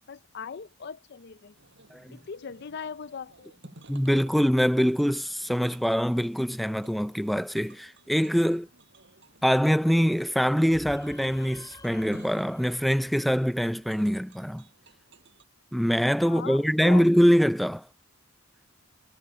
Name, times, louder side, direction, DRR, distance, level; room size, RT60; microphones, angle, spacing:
voice 1, 0.1-1.6 2.1-3.6 16.3-17.2, left 6 dB, 55° left, 0.5 m, -40 dB
sound 1, 1.6-15.4, right 2 dB, 60° right, 6.2 m, -55 dB
voice 2, 3.9-8.7 9.4-14.6 15.7-17.8, equal, ahead, 0.3 m, -24 dB
sound 2, 10.7-14.3, left 1 dB, 20° left, 5.6 m, -50 dB
head